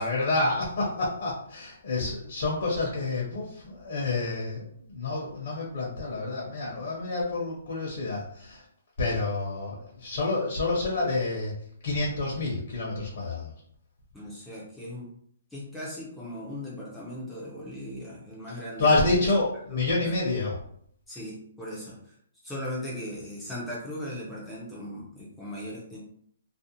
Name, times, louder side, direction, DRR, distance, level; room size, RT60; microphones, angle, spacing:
voice 1, 0.0-8.6 9.0-11.5 11.8-13.5 18.8-20.6, left 2 dB, 55° left, -3 dB, 0.7 m, -28 dB
voice 2, 14.1-15.1 15.5-18.8 19.2-19.3 19.7-20.1 21.1-22.0 22.4-26.0, left 1 dB, 5° left, -6 dB, 0.4 m, -38 dB
2.5 x 2.0 x 2.7 m, 0.66 s
hypercardioid pair, 170°, 0 cm